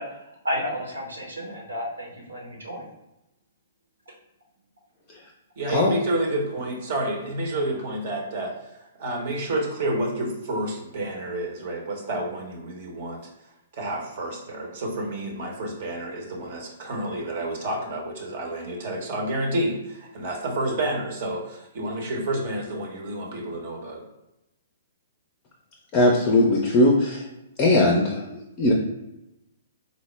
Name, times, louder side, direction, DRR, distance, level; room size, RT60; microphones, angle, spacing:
voice 1, 0.0-2.9, equal, 75° right, -1 dB, 1.0 m, -32 dB
voice 2, 5.6-8.5 9.0-13.2 13.7-24.0, right 1 dB, 45° right, 0 dB, 0.8 m, -29 dB
voice 3, 25.9-27.3 27.6-28.7, left 1 dB, 30° left, 0 dB, 0.5 m, -19 dB
4.0 x 2.1 x 3.2 m, 0.91 s
figure-of-eight pair, 115°, 0 cm